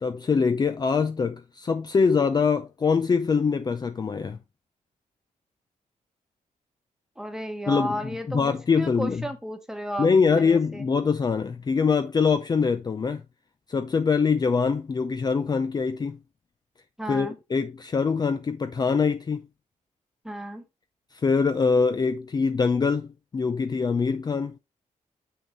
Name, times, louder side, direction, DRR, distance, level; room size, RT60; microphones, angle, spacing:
voice 1, 0.0-4.4 7.7-8.0 8.3-9.2 10.0-13.2 13.7-16.2 17.1-19.5 21.1-24.6, left 5 dB, 30° left, 0.5 m, -24 dB
voice 2, 7.2-10.9 17.0-17.4 20.2-20.6, equal, 5° right, 1.2 m, -33 dB
7.1 x 5.6 x 3.1 m
cardioid pair, 110°, 13 cm